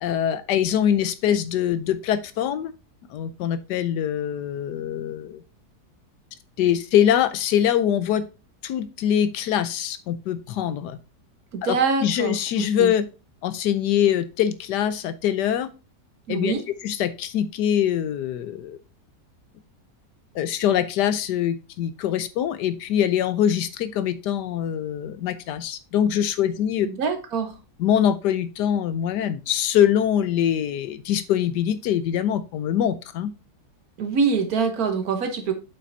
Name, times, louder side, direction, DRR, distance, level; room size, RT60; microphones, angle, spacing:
voice 1, 0.0-2.7 3.1-5.4 6.6-8.2 8.6-11.0 11.6-11.8 12.0-13.0 13.4-15.7 16.3-16.5 16.8-18.8 20.3-26.9 27.8-33.3, left 10 dB, 80° left, 13 dB, 1.2 m, -23 dB
voice 2, 11.5-12.9 16.3-16.6 26.8-27.6 34.0-35.5, right 5 dB, 60° right, 6 dB, 1.4 m, -25 dB
7.5 x 5.7 x 2.6 m, 0.31 s
omnidirectional pair, 1.8 m